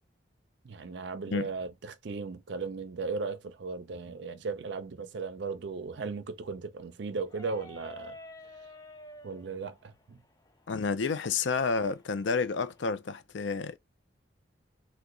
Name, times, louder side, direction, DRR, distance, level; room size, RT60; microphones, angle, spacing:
voice 1, 0.6-8.2 9.2-10.2, right 4 dB, 65° right, 0.5 m, -36 dB
sound 1, 7.2-12.9, left 2 dB, 20° left, 0.5 m, -51 dB
voice 2, 10.7-13.8, left 5 dB, 70° left, 0.4 m, -30 dB
2.8 x 2.2 x 3.7 m
head